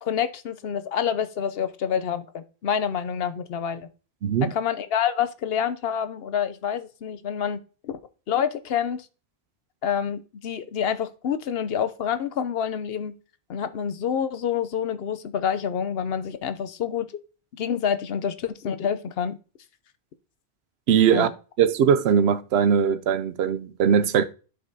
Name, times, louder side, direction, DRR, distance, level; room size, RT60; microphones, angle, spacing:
voice 1, 0.0-3.9 4.5-8.0 8.3-9.1 9.8-13.1 13.5-17.1 17.5-19.4 21.1-21.3, left 8 dB, 70° left, 0.9 m, -27 dB
voice 2, 4.2-4.5 20.9-21.3 21.6-24.2, right 7 dB, 85° right, 0.8 m, -20 dB
14.5 x 5.2 x 2.7 m
omnidirectional pair, 1.0 m